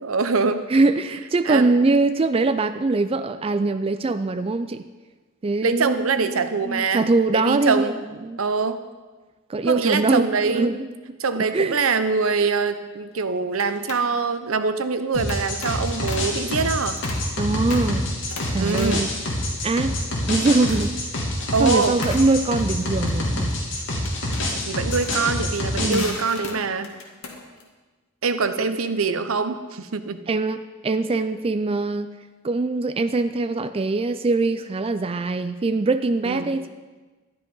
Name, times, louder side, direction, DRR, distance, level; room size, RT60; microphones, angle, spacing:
voice 1, 0.0-0.7 1.4-1.7 5.6-8.0 8.4-8.8 9.7-10.7 11.2-17.0 18.6-19.1 21.5-22.0 24.7-27.0 28.2-30.2 36.2-36.5, right 4 dB, 85° right, 10 dB, 0.8 m, -24 dB
voice 2, 0.7-4.8 5.4-7.9 8.2-8.4 9.5-11.2 11.5-11.8 17.4-18.1 18.5-19.1 19.6-20.0 20.3-21.2 21.6-23.5 25.8-26.2 28.6-28.7 30.3-32.1 32.4-36.7, right 3 dB, 25° right, 10 dB, 0.4 m, -22 dB
sound 1, 12.7-13.0 13.5-14.1 15.3-16.4 16.8-17.3 17.7-18.0 18.3-20.2 20.5-21.0 22.0-27.6, left 3 dB, 85° left, 2.0 m, -38 dB
sound 2, 15.1-26.1, left 1 dB, 65° left, 2.9 m, -26 dB
12.5 x 10.5 x 5.4 m, 1.3 s
head